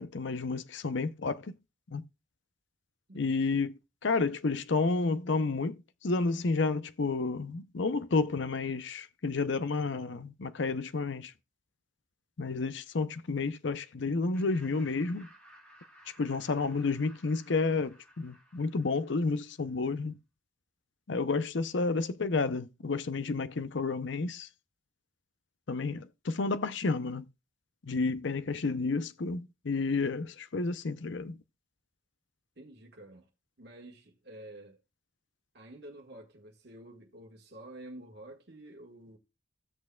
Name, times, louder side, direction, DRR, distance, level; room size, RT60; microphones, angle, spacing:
voice 1, 0.0-1.5 1.9-2.0 3.1-3.7 4.0-11.3 12.4-15.3 16.2-20.1 21.1-24.5 25.7-27.3 27.8-31.4, left 3 dB, 60° left, 0.6 m, -31 dB
voice 2, 3.1-3.4 32.5-33.3 33.6-34.8 35.5-39.2, right 1 dB, 55° right, 1.6 m, -49 dB
Laughter, 14.3-19.6, equal, 5° left, 2.9 m, -58 dB
16.0 x 6.4 x 2.3 m
head